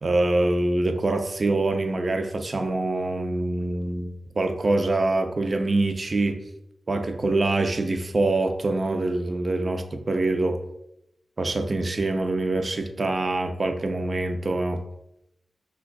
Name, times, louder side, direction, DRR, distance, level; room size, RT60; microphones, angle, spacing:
voice 1, 0.0-6.4 6.9-10.6 11.4-14.8, right 2 dB, 50° right, 6 dB, 0.5 m, -25 dB
5.8 x 2.2 x 2.3 m, 0.81 s
cardioid pair, 60°, 0 cm